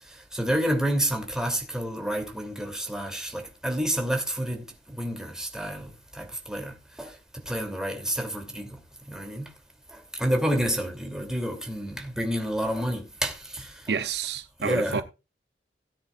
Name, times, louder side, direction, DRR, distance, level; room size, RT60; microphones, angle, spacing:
voice 1, 0.3-7.1 7.5-8.8 9.1-9.5 9.9-14.0 14.6-15.0, equal, 5° right, 2.8 m, -29 dB
voice 2, 13.9-15.0, right 5 dB, 65° right, 0.6 m, -29 dB
17.5 x 9.5 x 2.4 m
head